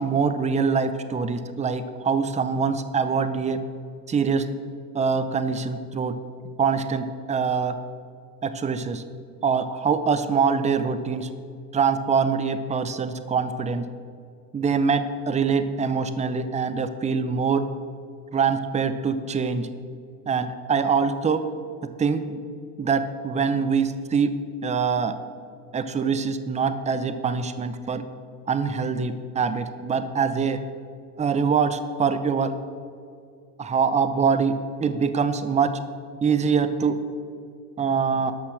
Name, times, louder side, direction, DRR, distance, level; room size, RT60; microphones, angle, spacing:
voice 1, 0.0-3.6 4.1-4.5 4.9-6.1 6.6-7.8 8.4-9.0 9.4-11.3 11.7-13.9 14.5-17.6 18.3-19.7 20.3-21.4 22.0-22.4 22.8-24.3 24.6-25.1 25.7-28.0 28.5-30.6 31.2-32.5 33.6-34.5 34.8-35.7 36.2-37.0 37.8-38.3, right 5 dB, 15° right, 11 dB, 0.7 m, -24 dB
13.0 x 5.7 x 6.4 m, 2.3 s
hypercardioid pair, 100°, 47 cm